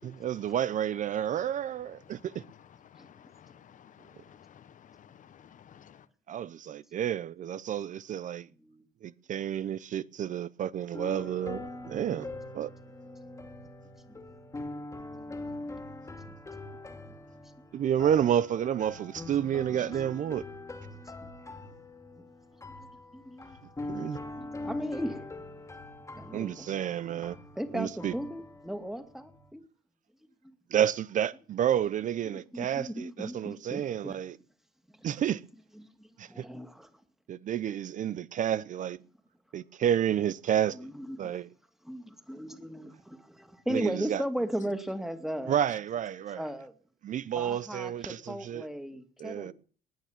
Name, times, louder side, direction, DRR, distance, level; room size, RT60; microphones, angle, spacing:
voice 1, 0.0-2.4 6.3-8.5 9.0-12.3 12.5-12.7 17.7-20.4 23.9-24.2 26.3-27.4 27.7-28.1 30.7-34.4 35.0-35.4 36.2-36.4 37.3-39.0 39.5-40.8 41.2-41.5 43.7-44.2 45.5-46.4 47.0-48.6 49.2-49.5, right 10 dB, 50° right, 0.6 m, -30 dB
voice 2, 2.8-6.0, left 9 dB, 50° left, 1.0 m, -55 dB
sound 1, 10.9-29.5, left 2 dB, 15° left, 2.3 m, -43 dB
voice 3, 23.1-23.6 24.4-25.5 26.1-26.7 27.6-29.6 30.4-30.5 32.3-34.2 35.0-35.1 35.7-36.9 40.8-41.3 41.8-45.6 46.3-46.7 47.3-49.5, equal, ahead, 2.4 m, -37 dB
19.5 x 9.4 x 7.3 m
cardioid pair, 110°, 17 cm